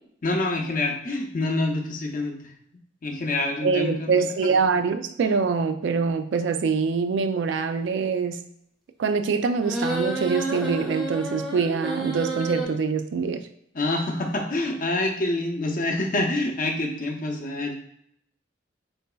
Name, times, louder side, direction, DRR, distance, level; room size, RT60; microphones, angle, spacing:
voice 1, 0.2-2.5 3.0-4.1 4.4-4.5 13.7-17.7, left 2 dB, 45° left, 0.6 m, -26 dB
voice 2, 3.6-8.4 9.0-13.4, right 5 dB, 70° right, 0.3 m, -24 dB
sound 1, 9.6-12.6, right 2 dB, ahead, 0.6 m, -30 dB
3.9 x 3.9 x 2.2 m
head